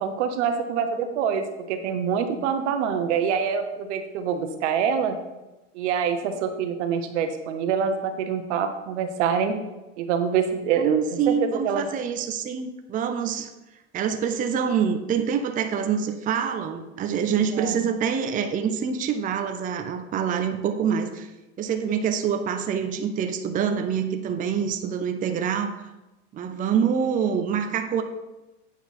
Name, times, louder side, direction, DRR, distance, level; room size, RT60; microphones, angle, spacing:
voice 1, 0.0-5.2 5.7-9.6 10.0-11.0 11.3-11.9 17.5-17.8, right 7 dB, 75° right, 7 dB, 1.0 m, -25 dB
voice 2, 10.8-13.5 13.9-21.3 21.6-25.9 26.3-28.0, right 7 dB, 25° right, 7 dB, 0.5 m, -26 dB
8.5 x 4.4 x 4.2 m, 1.0 s
supercardioid pair, 110°, 35 cm